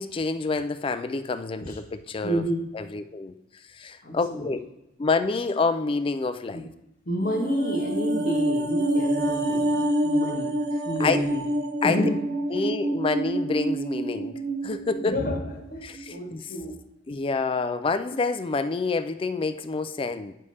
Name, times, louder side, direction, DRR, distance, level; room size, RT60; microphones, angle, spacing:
voice 1, 0.0-2.4 2.7-3.3 3.7-4.6 5.0-6.6 11.0-11.2 11.8-12.0 12.5-15.2 15.8-16.5 17.1-20.3, left 4 dB, 25° left, 11 dB, 0.3 m, -27 dB
voice 2, 2.2-2.7 4.0-4.5 6.5-6.6 7.0-10.5 10.8-11.5 11.8-12.2 15.0-15.4 15.7-16.8, equal, 45° left, -1 dB, 1.1 m, -29 dB
sound 1, 7.2-15.7 16.0-16.1, right 1 dB, 50° right, 0.6 m, -27 dB
8.4 x 3.3 x 5.5 m, 0.88 s
head